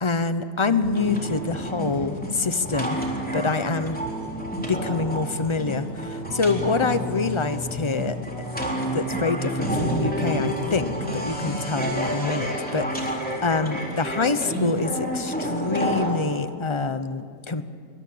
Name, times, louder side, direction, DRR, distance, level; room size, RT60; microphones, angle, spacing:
voice 1, 0.0-3.0 3.3-4.0 4.7-8.2 8.9-17.6, left 4 dB, 25° left, 11 dB, 0.6 m, -26 dB
sound 1, 0.8-16.1, equal, 5° left, 3.7 m, -29 dB
24.0 x 22.5 x 8.5 m, 2.2 s
omnidirectional pair, 1.7 m